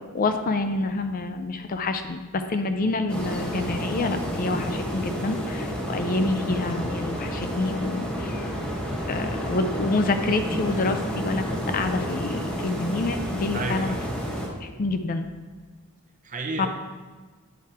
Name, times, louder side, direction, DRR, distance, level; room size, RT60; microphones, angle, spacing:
voice 1, 0.0-8.7 9.1-14.0 14.6-15.3 16.6-16.7, left 3 dB, 40° left, 8 dB, 0.4 m, -27 dB
sound 1, 3.1-14.5, equal, 5° left, 1.1 m, -30 dB
voice 2, 13.5-14.2 16.2-16.7, right 2 dB, 35° right, 4 dB, 0.8 m, -31 dB
9.3 x 4.7 x 4.3 m, 1.4 s
head